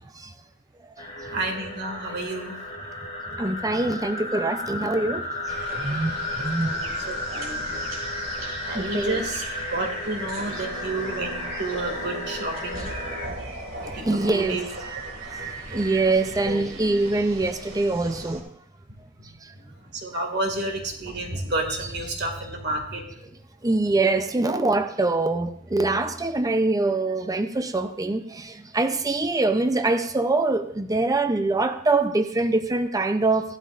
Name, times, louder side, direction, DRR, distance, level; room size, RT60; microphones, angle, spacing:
sound 1, 1.0-13.3, left 2 dB, 35° left, 2.6 m, -33 dB
voice 1, 1.3-2.6 6.6-7.7 8.6-9.4 9.7-12.9 13.8-14.6 16.5-16.7 19.2-19.3 19.5-23.3, right 2 dB, 60° right, 2.3 m, -31 dB
voice 2, 3.4-5.2 5.7-6.2 6.4-6.8 8.7-9.2 13.3-13.4 14.0-14.6 15.7-18.5 23.6-33.6, right 2 dB, 20° right, 0.5 m, -24 dB
sound 2, 5.5-18.4, right 2 dB, 80° right, 2.3 m, -38 dB
16.5 x 12.0 x 2.5 m
head